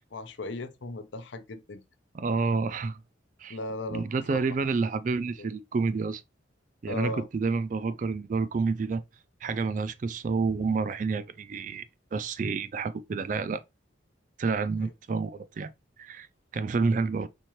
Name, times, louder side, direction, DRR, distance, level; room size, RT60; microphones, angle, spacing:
voice 1, 0.1-1.8 3.5-4.4 5.4-5.5 6.8-7.3, left 2 dB, 70° left, 0.6 m, -37 dB
voice 2, 2.1-3.0 3.4-3.6 3.9-6.2 6.8-9.0 9.4-11.8 12.1-13.6 14.4-15.7 16.0-16.3 16.5-17.3, right 4 dB, 40° right, 0.3 m, -29 dB
4.4 x 3.6 x 3.0 m
head